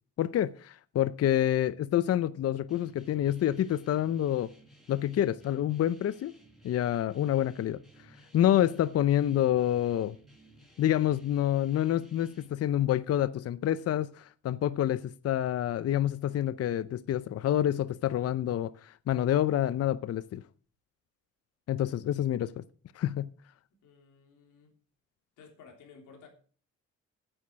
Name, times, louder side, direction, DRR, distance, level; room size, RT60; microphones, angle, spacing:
voice 1, 0.2-4.5 4.9-6.3 6.6-7.8 8.3-10.2 10.8-20.4 21.7-22.6 22.9-23.3, left 11 dB, 55° left, 0.6 m, -27 dB
sound 1, 2.7-12.5, right 1 dB, ahead, 4.3 m, -59 dB
voice 2, 23.7-24.7 25.4-26.3, left 5 dB, 85° left, 3.3 m, -55 dB
9.1 x 8.5 x 6.2 m
cardioid pair, 90°, 30 cm